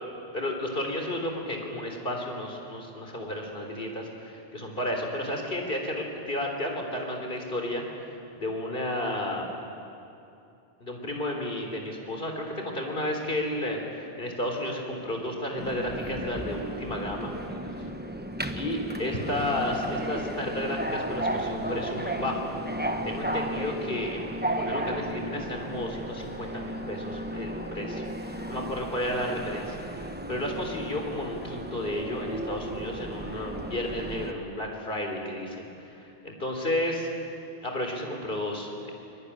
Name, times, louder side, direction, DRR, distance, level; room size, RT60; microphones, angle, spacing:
voice 1, 0.3-7.8 8.4-9.5 10.8-17.4 17.6-17.7 18.6-22.5 23.0-37.1 37.6-38.9, left 1 dB, 60° left, 2 dB, 4.0 m, -32 dB
Subway metro underground, 15.6-34.3, right 1 dB, 10° right, 1.1 m, -34 dB
24.0 x 21.5 x 9.8 m, 2.7 s
omnidirectional pair, 1.0 m